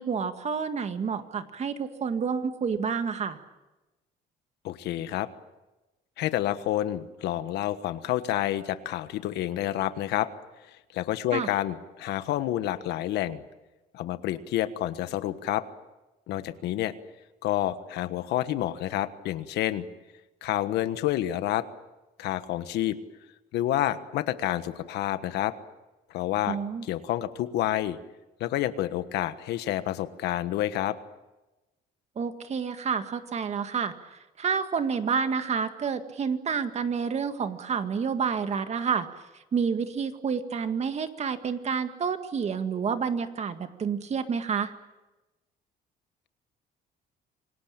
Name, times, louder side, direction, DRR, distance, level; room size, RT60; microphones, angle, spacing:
voice 1, 0.0-3.4 11.3-11.5 26.5-26.9 32.2-33.9 34.4-39.1 39.5-44.7, right 6 dB, 40° right, 9 dB, 1.9 m, -29 dB
voice 2, 4.6-5.3 6.2-10.3 10.9-13.4 13.9-15.6 16.3-16.9 17.4-19.9 20.4-21.7 22.2-23.0 23.5-25.5 26.1-26.6 26.8-28.0 28.4-31.0, left 13 dB, 80° left, 12 dB, 1.4 m, -29 dB
27.0 x 18.5 x 8.9 m, 1.1 s
cardioid pair, 110°, 17 cm